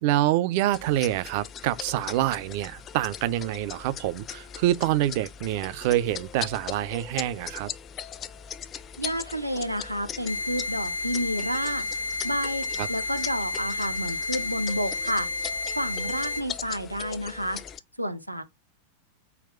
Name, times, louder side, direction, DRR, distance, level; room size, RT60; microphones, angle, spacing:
voice 1, 0.0-7.7 12.8-12.9, right 13 dB, 45° right, 0.4 m, -26 dB
sound 1, 0.7-17.8, left 8 dB, 30° left, 0.4 m, -40 dB
voice 2, 9.0-11.9 12.2-15.3 15.7-17.6 18.0-18.4, equal, 90° right, 0.7 m, -30 dB
sound 2, 10.3-16.4, left 2 dB, 85° left, 0.5 m, -31 dB
4.0 x 2.3 x 4.2 m
figure-of-eight pair, 90°, 0 cm